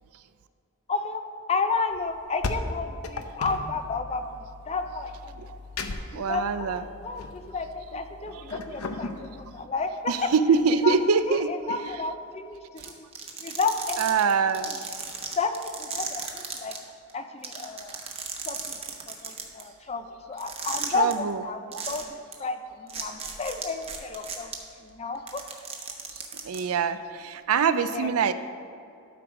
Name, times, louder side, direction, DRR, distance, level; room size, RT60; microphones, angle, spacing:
voice 1, 0.9-1.2 1.5-5.4 6.1-9.9 10.2-10.3 10.8-10.9 11.3-13.1 13.4-14.3 14.6-14.8 15.4-16.8 17.1-18.0 18.5-18.8 19.1-21.6 21.9-24.5 24.8-25.4 27.8-28.2, left 4 dB, 30° left, 8 dB, 0.5 m, -32 dB
sound 1, 1.9-9.6, left 3 dB, 85° left, 0.6 m, -37 dB
voice 2, 6.1-6.8 8.3-8.6 10.1-11.9 12.8-12.9 14.0-14.7 20.9-21.4 21.7-21.8 26.4-28.3, right 5 dB, 80° right, 12 dB, 0.4 m, -24 dB
sound 2, 12.8-16.8 17.1-17.2 17.4-19.6 20.4-21.1 21.7-22.0 22.3-22.4 22.9-24.5 25.1-26.6, right 6 dB, 30° right, 0.9 m, -35 dB
12.5 x 4.7 x 5.0 m, 2.5 s
head